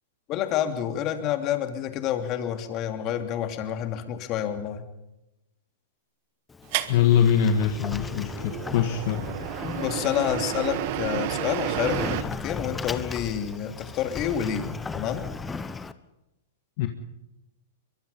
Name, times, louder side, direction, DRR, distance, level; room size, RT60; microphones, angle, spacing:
voice 1, 0.3-4.8 9.8-15.3, left 10 dB, 40° left, 7 dB, 2.8 m, -28 dB
Sliding door, 6.5-15.9, left 4 dB, 10° left, 1.1 m, -37 dB
sound 1, 6.7-12.2, right 12 dB, 50° right, 1.5 m, -32 dB
voice 2, 6.9-9.2 16.8-16.9, left 8 dB, 55° left, 6 dB, 1.8 m, -22 dB
23.0 x 22.5 x 5.6 m, 0.92 s
hypercardioid pair, 125°, 0 cm